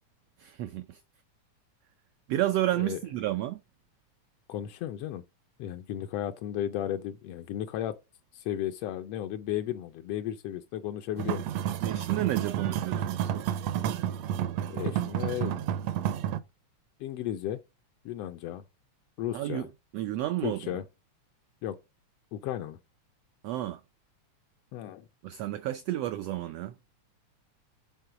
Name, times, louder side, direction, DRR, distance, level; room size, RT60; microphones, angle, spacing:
voice 1, 0.4-1.0 2.3-3.6 11.8-13.6 19.3-19.7 19.9-20.8 23.4-23.8 25.2-26.8, right 14 dB, 90° right, 1.4 m, -31 dB
voice 2, 4.5-5.2 5.6-7.9 8.3-11.4 14.7-15.6 17.0-17.6 18.0-18.6 19.2-19.7 20.4-20.8 21.6-21.7 22.3-22.8 24.7-25.1, left 12 dB, 85° left, 1.3 m, -34 dB
sound 1, 11.2-16.4, right 10 dB, 75° right, 1.7 m, -30 dB
8.2 x 3.8 x 5.9 m
omnidirectional pair, 3.4 m